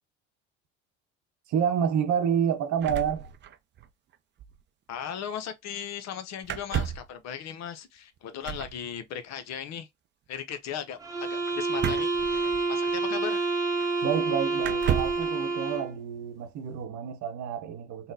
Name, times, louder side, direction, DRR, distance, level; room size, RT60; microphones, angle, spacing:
voice 1, 1.5-3.3 14.0-18.1, right 8 dB, 50° right, 0.9 m, -29 dB
sound 1, 2.8-3.9 4.1-4.2 4.4-4.6 6.4-7.2 8.4-8.8 11.7-12.9 13.8-13.9 14.6-15.3, right 10 dB, 30° right, 0.4 m, -32 dB
voice 2, 4.9-9.9 10.3-13.5, left 9 dB, 45° left, 0.6 m, -37 dB
sound 2, 11.0-16.0, right 3 dB, 10° right, 0.8 m, -28 dB
3.8 x 2.1 x 2.6 m
hypercardioid pair, 65°, 37 cm